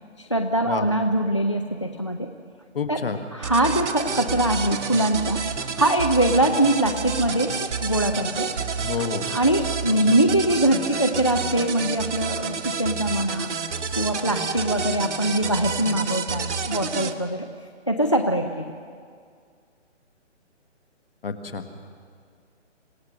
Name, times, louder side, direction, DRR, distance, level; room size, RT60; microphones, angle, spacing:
voice 1, 0.2-2.3 2.9-3.0 3.3-5.4 5.8-8.5 9.3-13.6 14.0-17.5 17.9-18.7, right 1 dB, 25° left, 5 dB, 0.5 m, -23 dB
voice 2, 2.7-3.2 8.8-9.4 21.2-21.6, left 5 dB, 50° left, 7 dB, 1.8 m, -29 dB
sound 1, 3.4-17.1, right 5 dB, 70° right, 1.4 m, -29 dB
26.5 x 17.0 x 6.6 m, 2.1 s
hypercardioid pair, 175°, 36 cm